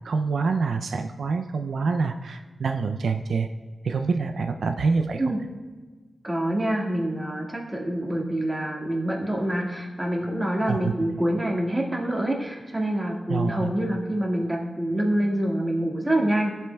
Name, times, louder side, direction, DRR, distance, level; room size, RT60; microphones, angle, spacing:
voice 1, 0.0-3.5 3.8-5.3 10.7-10.9 13.3-13.8, right 4 dB, 90° right, 6 dB, 0.4 m, -26 dB
voice 2, 6.2-16.5, right 1 dB, 15° right, -2 dB, 1.7 m, -26 dB
15.5 x 7.4 x 2.3 m, 1.3 s
wide cardioid pair, 100°, 0 cm